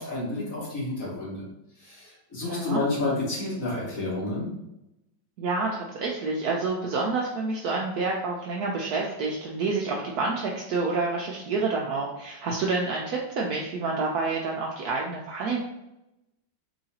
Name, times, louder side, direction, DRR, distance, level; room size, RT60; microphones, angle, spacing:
voice 1, 0.0-1.4 1.8-4.5, left 2 dB, 45° left, -6 dB, 1.6 m, -30 dB
voice 2, 2.5-2.8 5.4-15.6, right 3 dB, 75° right, -2 dB, 0.9 m, -28 dB
3.9 x 3.1 x 2.7 m, 0.89 s
omnidirectional pair, 2.1 m